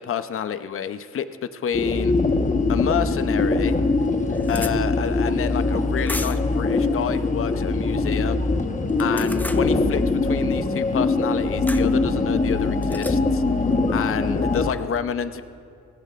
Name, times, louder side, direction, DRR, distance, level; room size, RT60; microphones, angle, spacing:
voice 1, 0.0-2.1 2.7-3.7 4.5-8.4 9.0-13.4 13.9-15.4, left 8 dB, 45° left, 11 dB, 0.7 m, -28 dB
sound 1, 1.7-14.7, left 3 dB, 25° left, 1.2 m, -22 dB
sound 2, 3.1-3.2 3.7-3.8 4.0-4.7 6.1-6.5 8.9-9.6 11.7-11.9 12.8-13.2, left 1 dB, 5° left, 0.6 m, -34 dB
24.5 x 18.5 x 2.5 m, 2.4 s
cardioid pair, 90°, 30 cm